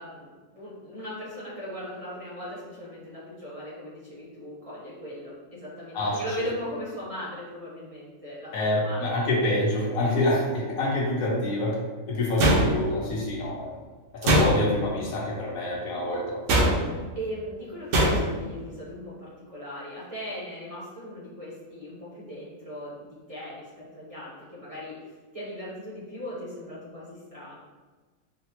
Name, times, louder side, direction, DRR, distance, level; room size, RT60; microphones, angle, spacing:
voice 1, 0.0-9.3 16.9-25.0 25.3-27.6, equal, 30° right, -9 dB, 0.7 m, -38 dB
voice 2, 8.5-11.8 12.1-13.7 14.1-16.4, left 1 dB, 80° left, -3 dB, 1.2 m, -26 dB
sound 1, 12.4-13.1 14.2-14.9 16.5-17.1 17.9-18.5, right 1 dB, 70° right, 1.0 m, -22 dB
4.0 x 2.1 x 2.9 m, 1.3 s
omnidirectional pair, 1.4 m